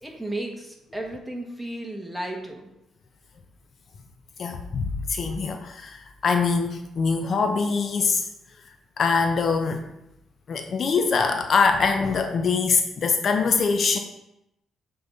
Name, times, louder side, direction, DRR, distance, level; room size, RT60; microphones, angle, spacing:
voice 1, 0.0-2.7, right 1 dB, 5° right, 0 dB, 1.3 m, -34 dB
voice 2, 4.4-8.3 9.0-9.9 10.5-14.0, left 5 dB, 50° left, 6 dB, 0.5 m, -23 dB
6.9 x 3.8 x 3.9 m, 0.85 s
cardioid pair, 90°, 0 cm